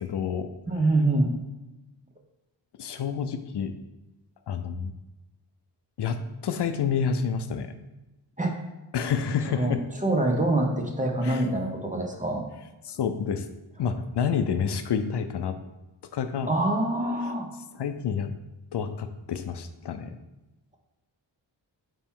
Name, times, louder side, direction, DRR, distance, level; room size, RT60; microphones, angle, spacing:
voice 1, 0.0-0.5 2.8-3.7 4.5-5.0 6.0-7.7 8.9-9.8 11.2-11.4 12.8-13.4 13.8-15.6 16.1-16.5 17.7-18.3 18.7-20.2, left 7 dB, 65° left, 9 dB, 0.5 m, -28 dB
voice 2, 0.7-1.3 8.4-8.6 9.5-12.5 16.5-17.5, right 2 dB, 15° right, 2 dB, 0.8 m, -25 dB
8.6 x 3.0 x 3.7 m, 1.0 s
wide cardioid pair, 115°, 44 cm